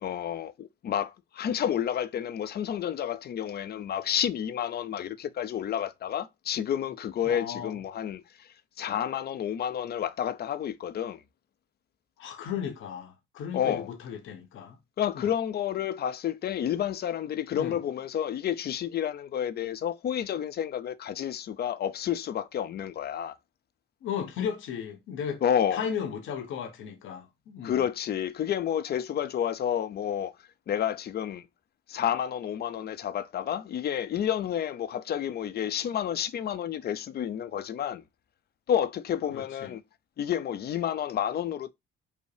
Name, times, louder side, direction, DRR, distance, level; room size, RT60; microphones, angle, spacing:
voice 1, 0.0-8.2 8.8-11.2 13.5-13.9 15.0-23.4 25.4-25.8 27.6-30.3 30.7-31.4 31.9-38.0 38.7-39.8 40.2-41.7, left 9 dB, 55° left, 0.5 m, -30 dB
voice 2, 7.2-7.8 12.2-14.8 15.1-15.3 17.5-17.8 24.0-25.4 25.7-27.8 39.3-39.7, left 8 dB, 80° left, 1.0 m, -35 dB
5.4 x 2.0 x 4.8 m
cardioid pair, 90°, 20 cm